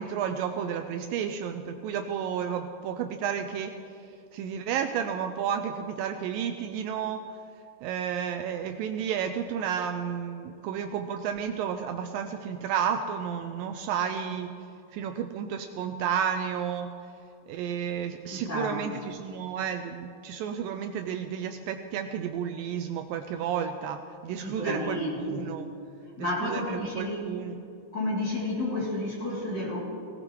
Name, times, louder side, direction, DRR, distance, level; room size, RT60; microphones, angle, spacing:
voice 1, 0.0-3.7 4.3-7.2 7.8-14.5 14.9-16.9 17.5-25.7 26.2-27.6, right 8 dB, 90° right, 6 dB, 2.0 m, -32 dB
voice 2, 18.3-18.8 24.4-25.5 26.2-27.3 27.9-29.8, left 1 dB, 30° left, -6 dB, 2.9 m, -31 dB
18.0 x 17.5 x 3.1 m, 2.5 s
omnidirectional pair, 4.6 m